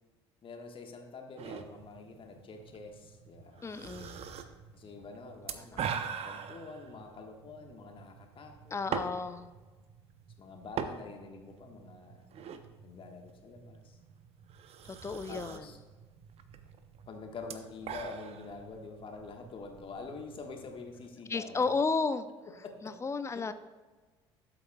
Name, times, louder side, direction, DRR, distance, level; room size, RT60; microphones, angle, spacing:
voice 1, 0.4-3.6 4.7-5.9 6.2-9.2 10.4-12.3 12.8-14.0 15.3-15.8 17.1-21.7 22.6-23.0 23.2-23.5, left 4 dB, 35° left, 3 dB, 1.4 m, -46 dB
sound 1, 1.4-21.1, right 7 dB, 45° right, 0.7 m, -44 dB
voice 2, 3.6-4.2 5.7-5.9 8.7-9.5 14.8-15.7 21.3-22.3 22.8-23.5, left 4 dB, 20° left, 12 dB, 0.6 m, -33 dB
13.0 x 7.7 x 2.3 m, 1.3 s
figure-of-eight pair, 60°, 15 cm